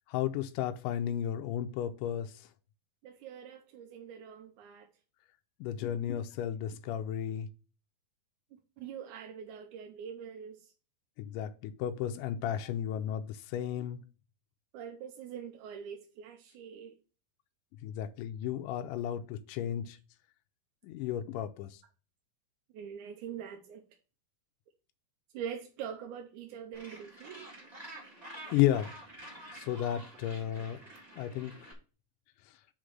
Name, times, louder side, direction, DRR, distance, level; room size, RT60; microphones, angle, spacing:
voice 1, 0.1-2.3 5.6-7.5 11.2-14.0 17.8-20.0 20.8-21.7 28.4-28.9 29.5-30.8 31.2-31.7, left 11 dB, 90° left, 8 dB, 1.8 m, -33 dB
voice 2, 3.0-4.9 8.5-10.7 14.7-17.0 22.7-23.8 25.3-27.4, right 8 dB, 75° right, 4 dB, 1.9 m, -44 dB
Gull seagull, 26.7-31.7, right 1 dB, 25° right, 0.9 m, -49 dB
5.1 x 5.1 x 6.1 m, 0.36 s
omnidirectional pair, 4.3 m